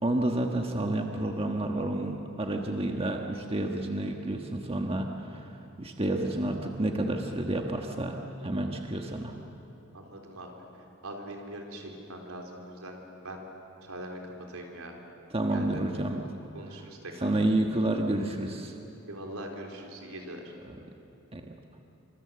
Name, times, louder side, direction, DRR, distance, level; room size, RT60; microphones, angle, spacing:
voice 1, 0.0-5.5 5.8-8.2 8.4-9.3 15.3-16.2 17.2-18.7 21.3-21.5, right 1 dB, 25° right, 2 dB, 1.4 m, -29 dB
voice 2, 9.9-13.4 13.8-15.0 15.4-15.8 16.5-17.3 19.1-20.5, right 1 dB, 80° right, 1 dB, 3.9 m, -42 dB
26.5 x 25.5 x 7.7 m, 2.9 s
head